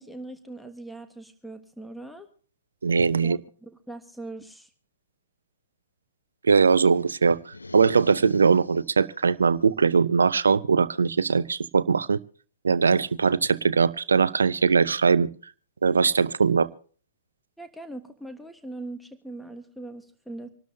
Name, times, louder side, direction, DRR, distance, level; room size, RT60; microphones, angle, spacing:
voice 1, 0.0-2.3 3.2-4.7 17.6-20.5, right 2 dB, ahead, 7 dB, 1.4 m, -41 dB
voice 2, 2.8-3.4 6.4-12.2 12.6-15.3 15.8-16.7, right 5 dB, 75° right, 17 dB, 0.6 m, -21 dB
sound 1, 7.4-9.1, left 3 dB, 85° left, 0.6 m, -41 dB
26.5 x 12.5 x 2.8 m, 0.42 s
figure-of-eight pair, 110°, 0 cm